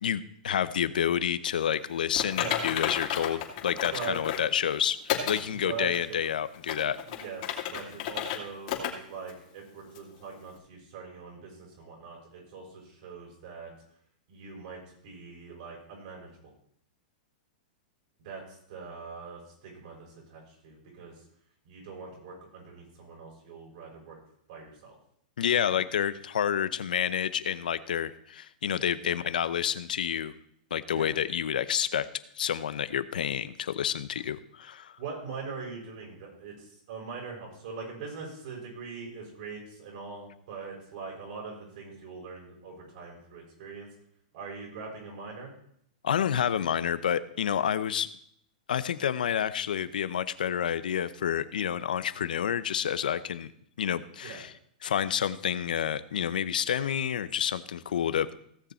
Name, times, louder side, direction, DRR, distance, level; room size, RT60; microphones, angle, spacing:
voice 1, 0.0-5.0 5.3-7.0 25.4-30.3 30.7-32.1 32.3-34.9 46.0-48.1 48.7-53.5 53.8-54.5 54.8-58.3, left 9 dB, 90° left, 14 dB, 0.7 m, -29 dB
Typing, 2.1-4.5 5.1-5.4 5.9-6.0 6.5-8.4 8.7-8.9 9.3-9.4 9.9-10.0, left 10 dB, 55° left, 2.7 m, -32 dB
voice 2, 5.5-6.2 7.1-13.7 14.3-16.5 18.2-21.1 21.6-24.2 24.5-25.0 25.7-25.9 29.0-29.1 30.9-31.1 35.0-43.9 44.3-45.5 54.2-54.4, right 5 dB, 60° right, -2 dB, 5.9 m, -42 dB
17.0 x 7.0 x 4.4 m, 0.68 s
hypercardioid pair, 140°, 5 cm